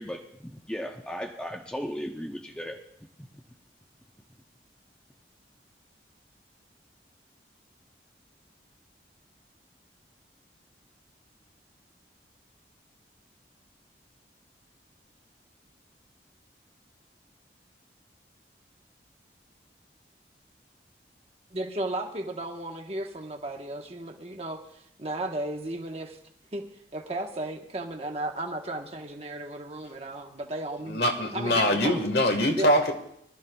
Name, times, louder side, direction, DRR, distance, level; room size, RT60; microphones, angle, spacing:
voice 1, 0.0-2.8 3.2-3.3, equal, 5° left, 0.6 m, -36 dB
voice 2, 21.5-26.2 26.5-26.6 26.9-31.0 31.3-32.1 32.6-32.7, right 1 dB, 35° right, 1.1 m, -34 dB
voice 3, 30.9-32.9, left 1 dB, 65° left, 1.5 m, -23 dB
23.5 x 12.5 x 2.3 m
head